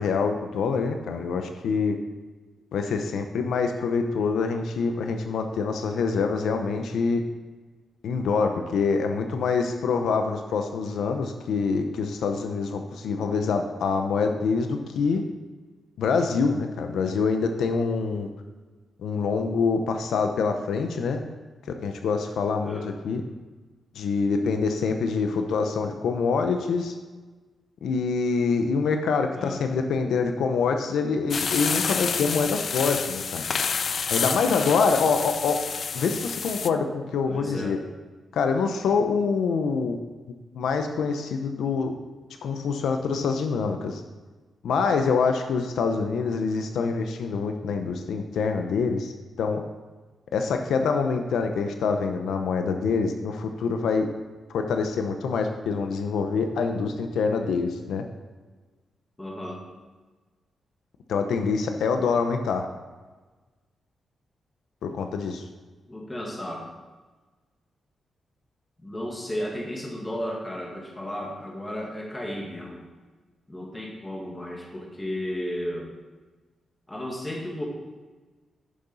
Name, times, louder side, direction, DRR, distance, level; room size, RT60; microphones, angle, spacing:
voice 1, 0.0-2.0 2.7-7.2 8.0-15.2 16.0-18.3 19.0-21.2 21.8-23.2 24.0-26.9 27.8-33.4 34.1-35.6 35.9-37.8 38.3-40.0 40.5-41.9 42.4-44.0 44.6-49.1 49.4-49.6 50.3-54.1 54.5-58.0 61.1-62.7 64.8-65.4, left 5 dB, 85° left, 6 dB, 0.8 m, -25 dB
sound 1, 31.3-36.7, left 6 dB, 40° left, 0.3 m, -29 dB
voice 2, 37.3-37.8 59.2-59.6 65.9-66.7 68.8-72.8 73.5-75.9 76.9-77.7, left 1 dB, 10° left, -1 dB, 1.7 m, -34 dB
10.5 x 6.8 x 4.0 m, 1.3 s
wide cardioid pair, 165°, 0 cm